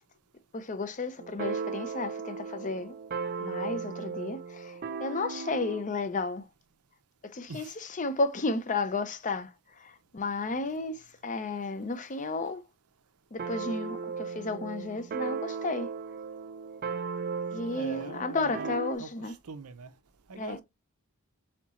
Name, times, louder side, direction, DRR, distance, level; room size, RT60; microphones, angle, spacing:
voice 1, 0.5-3.0 3.4-6.4 7.3-7.6 8.0-9.5 9.8-12.6 13.3-15.9 17.5-19.3 20.4-20.6, left 3 dB, 35° left, 0.6 m, -33 dB
sound 1, 1.2-5.9 13.4-19.0, right 5 dB, 45° right, 0.5 m, -36 dB
voice 2, 17.7-20.0 20.3-20.6, right 4 dB, 90° right, 0.7 m, -44 dB
4.4 x 4.0 x 2.4 m
head